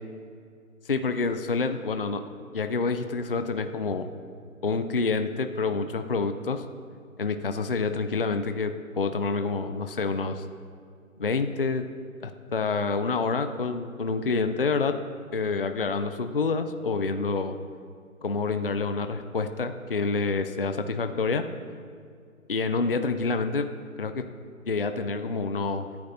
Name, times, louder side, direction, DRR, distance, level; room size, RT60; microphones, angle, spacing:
voice 1, 0.9-2.2 2.5-4.1 4.6-6.6 7.2-10.4 11.2-11.8 12.2-15.0 15.3-17.6 18.2-21.4 22.5-23.7 24.0-24.2 24.7-25.9, left 4 dB, 40° left, 8 dB, 0.4 m, -27 dB
18.0 x 10.0 x 2.7 m, 2.3 s
hypercardioid pair, 165°, 43 cm